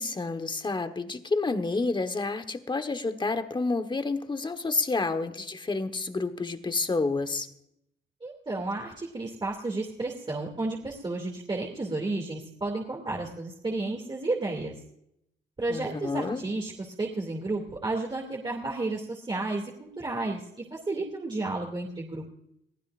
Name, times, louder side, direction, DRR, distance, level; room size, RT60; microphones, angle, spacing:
voice 1, 0.0-7.5 15.7-16.4, left 3 dB, 25° left, 9 dB, 1.3 m, -29 dB
voice 2, 8.2-14.7 15.6-20.4 20.7-22.3, right 2 dB, 25° right, -2 dB, 2.6 m, -32 dB
22.0 x 15.0 x 2.6 m, 0.76 s
cardioid pair, 90°, 20 cm